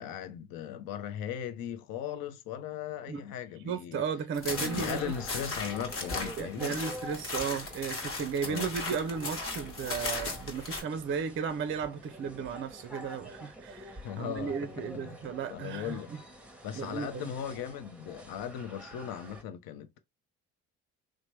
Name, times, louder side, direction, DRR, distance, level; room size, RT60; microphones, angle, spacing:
voice 1, 0.0-4.0 4.5-6.8 8.4-8.7 14.0-14.7 15.0-15.2 15.5-16.1 16.6-20.0, left 9 dB, 65° left, 0.6 m, -38 dB
voice 2, 3.6-5.1 6.4-16.2 16.7-17.3, right 6 dB, 35° right, 0.4 m, -35 dB
sound 1, 4.3-10.8, left 3 dB, 35° left, 1.1 m, -37 dB
sound 2, 4.5-19.4, equal, 5° right, 0.8 m, -47 dB
3.0 x 2.1 x 3.0 m
supercardioid pair, 65°, 37 cm